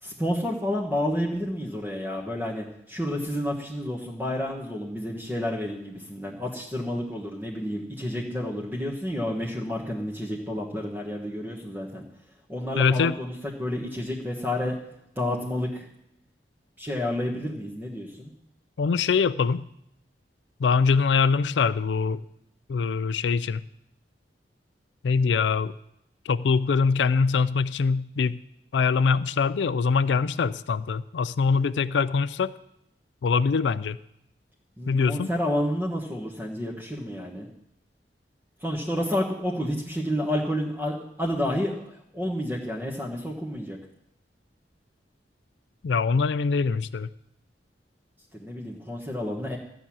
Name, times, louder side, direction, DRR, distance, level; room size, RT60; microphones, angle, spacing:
voice 1, 0.0-12.0 12.5-13.3 13.6-14.8 15.1-15.9 16.8-18.3 34.8-37.5 38.6-43.8 48.3-49.6, left 1 dB, 10° right, -2 dB, 1.3 m, -30 dB
voice 2, 12.8-13.1 18.8-19.6 20.6-22.2 22.7-23.6 25.0-25.7 26.3-28.4 28.7-32.5 33.2-34.0 34.9-35.3 45.8-47.1, left 5 dB, 85° left, 16 dB, 0.4 m, -23 dB
13.5 x 6.1 x 8.6 m, 0.77 s
head